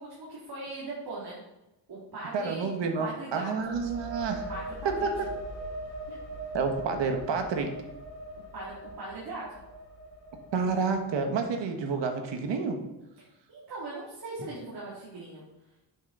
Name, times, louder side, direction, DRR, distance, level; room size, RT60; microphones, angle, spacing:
voice 1, 0.0-1.4 1.9-2.7 3.0-3.7 4.5-5.1 8.5-9.6 13.2-15.4, right 2 dB, 55° right, -6 dB, 2.7 m, -40 dB
voice 2, 2.3-4.5 5.0-5.1 6.1-6.2 6.5-7.7 10.5-12.8, right 5 dB, 70° right, 5 dB, 1.5 m, -29 dB
sound 1, 3.6-11.2, right 1 dB, 35° left, 2.1 m, -41 dB
9.0 x 7.2 x 4.0 m, 0.95 s
wide cardioid pair, 140°, 45 cm